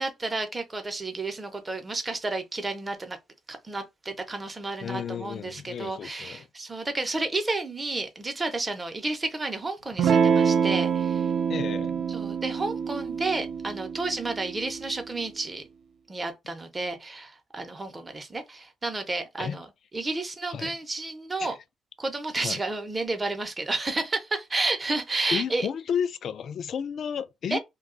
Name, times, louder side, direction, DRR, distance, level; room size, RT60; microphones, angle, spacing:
voice 1, 0.0-3.2 3.5-11.3 12.1-15.6 16.1-19.7 19.9-21.5 22.0-25.7 27.5-27.6, right 2 dB, 25° right, 0.8 m, -31 dB
voice 2, 4.8-6.5 11.5-12.0 19.4-19.6 20.5-20.8 21.4-21.6 22.4-22.6 25.3-27.6, left 7 dB, 60° left, 0.3 m, -32 dB
Electric guitar / Strum, 10.0-15.1, right 6 dB, 65° right, 0.4 m, -26 dB
2.3 x 2.3 x 3.7 m
cardioid pair, 90°, 0 cm